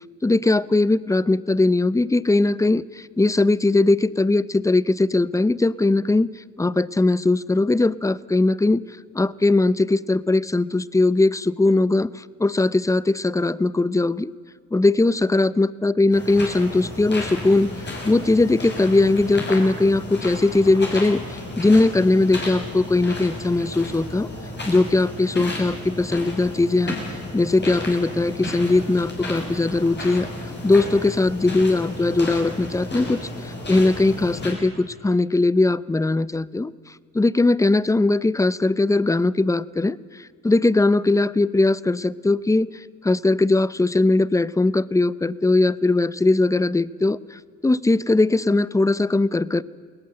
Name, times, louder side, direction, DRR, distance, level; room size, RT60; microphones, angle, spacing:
voice 1, 0.2-8.8 9.1-14.3 14.7-17.7 18.0-24.3 24.7-27.0 27.3-30.3 30.6-36.7 37.1-49.6, left 2 dB, 10° left, 20 dB, 0.6 m, -20 dB
sound 1, 16.1-34.5, left 1 dB, 35° left, 6.8 m, -33 dB
21.5 x 18.0 x 7.8 m, 2.1 s
cardioid pair, 90°, 30 cm